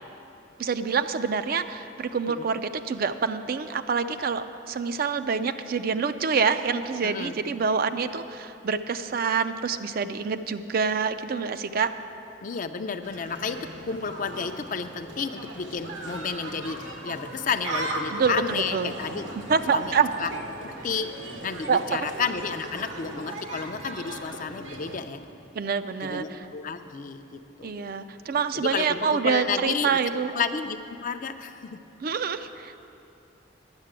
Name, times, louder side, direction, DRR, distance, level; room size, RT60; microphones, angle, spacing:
voice 1, 0.6-11.9 18.1-18.9 19.3-20.1 21.7-22.1 25.5-26.4 27.6-30.3 32.0-32.8, right 5 dB, 50° right, 10 dB, 0.4 m, -26 dB
voice 2, 7.0-7.3 12.4-19.3 19.7-20.3 20.6-21.1 21.4-25.2 26.0-27.9 28.5-30.0 30.3-31.8, left 5 dB, 45° left, 8 dB, 0.5 m, -31 dB
sound 1, 13.0-25.0, right 2 dB, 85° right, 1.3 m, -38 dB
10.5 x 6.7 x 8.9 m, 2.7 s
head